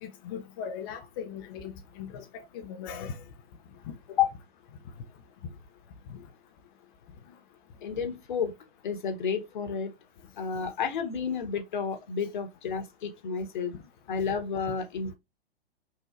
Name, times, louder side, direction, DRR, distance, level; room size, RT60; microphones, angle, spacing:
voice 1, 0.0-3.2 3.8-3.9 6.1-6.2, left 7 dB, 25° left, 0.4 m, -39 dB
voice 2, 7.8-8.5 8.8-9.9 10.4-13.7 14.1-15.1, left 7 dB, 55° left, 1.1 m, -31 dB
5.6 x 2.7 x 2.4 m
figure-of-eight pair, 115°, 30 cm